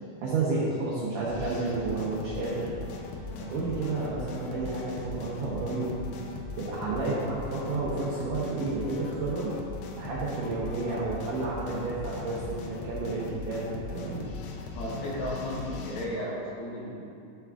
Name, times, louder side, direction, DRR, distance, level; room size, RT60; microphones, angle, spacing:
voice 1, 0.2-2.7 3.4-5.9 6.6-9.5 9.9-14.2, right 3 dB, 85° right, -7 dB, 1.9 m, -31 dB
sound 1, 1.3-16.1, left 4 dB, 85° left, 3.0 m, -39 dB
voice 2, 14.8-17.1, left 1 dB, 70° left, -6 dB, 2.6 m, -34 dB
12.0 x 5.8 x 2.4 m, 2.5 s
omnidirectional pair, 5.1 m